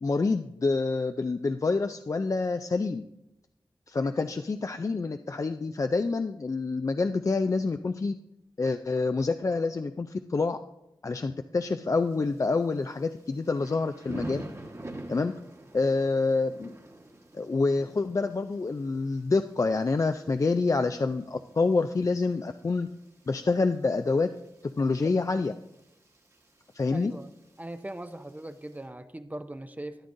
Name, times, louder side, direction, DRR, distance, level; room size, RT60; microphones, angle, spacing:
voice 1, 0.0-3.0 3.9-8.2 8.6-10.6 11.0-14.4 15.1-15.3 15.7-16.8 17.3-22.9 23.3-24.3 24.8-25.5 26.7-27.1, left 3 dB, 40° left, 8 dB, 0.4 m, -27 dB
Thunder / Rain, 11.9-28.8, right 1 dB, 35° right, 1.3 m, -48 dB
voice 2, 26.9-27.3 27.6-30.1, right 1 dB, 20° right, 9 dB, 0.6 m, -40 dB
13.0 x 9.6 x 2.6 m, 0.89 s
cardioid pair, 55°, 8 cm